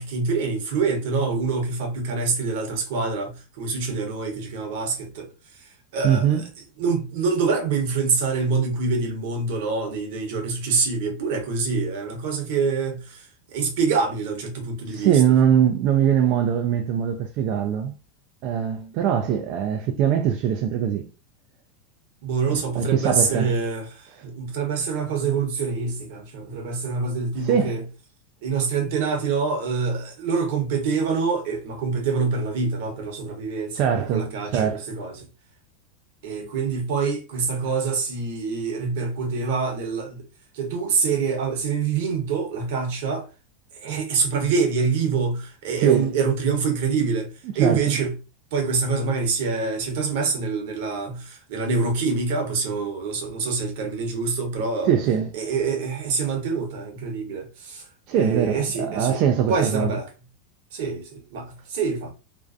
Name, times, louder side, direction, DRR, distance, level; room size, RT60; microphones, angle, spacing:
voice 1, 0.0-5.3 5.6-6.4 6.8-13.3 13.5-15.2 22.2-27.8 28.4-35.3 36.2-40.2 40.5-43.3 43.8-47.3 47.5-48.1 48.5-54.9 55.3-59.2 59.5-60.1 60.7-62.1, right 4 dB, 70° right, 0.9 m, -25 dB
voice 2, 6.0-6.5 14.9-18.0 18.4-21.1 22.5-23.5 27.4-27.8 33.7-34.9 45.8-46.1 47.5-48.0 54.9-55.3 58.1-60.0, right 8 dB, 50° right, 0.3 m, -22 dB
2.5 x 2.2 x 2.4 m
hypercardioid pair, 115°, 0 cm